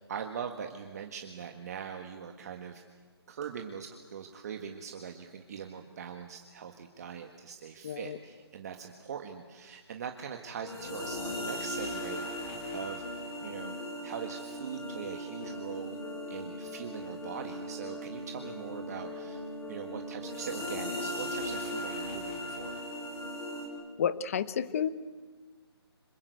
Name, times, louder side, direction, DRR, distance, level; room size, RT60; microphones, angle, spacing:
voice 1, 0.0-2.8 3.3-12.3 12.7-13.0 13.4-13.8 14.0-16.0 16.3-22.8, right 7 dB, 40° right, 4 dB, 1.7 m, -42 dB
voice 2, 7.8-8.2 24.0-24.9, left 8 dB, 35° left, 15 dB, 1.0 m, -30 dB
sound 1, 10.6-23.7, left 1 dB, 15° left, 3.4 m, -38 dB
26.0 x 23.0 x 8.2 m, 1.4 s
hypercardioid pair, 165°, 14 cm